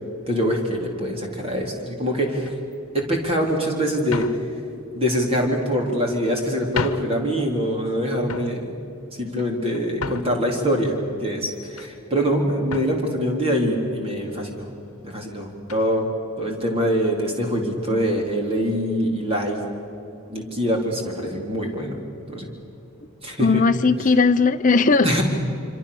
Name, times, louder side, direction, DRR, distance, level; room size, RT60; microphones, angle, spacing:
voice 1, 0.3-2.5 2.9-4.3 4.9-8.7 9.2-14.7 15.0-16.1 16.4-19.6 20.3-22.0 22.3-22.5 23.2-23.6 25.0-25.2, equal, 25° right, 1 dB, 3.9 m, -24 dB
sound 1, 2.4-2.8 3.5-3.6 4.1-4.5 5.4-6.0 6.5-6.6 6.7-7.2 7.6-7.9 8.2-8.6 9.2-10.5 11.1-11.9 12.2-12.4 12.7-13.0 13.8-13.9 14.2-14.4 15.7-15.9, left 4 dB, 75° left, 1.1 m, -33 dB
voice 2, 23.4-25.2, left 4 dB, 35° left, 6 dB, 0.7 m, -18 dB
26.5 x 26.0 x 6.9 m, 2.9 s
head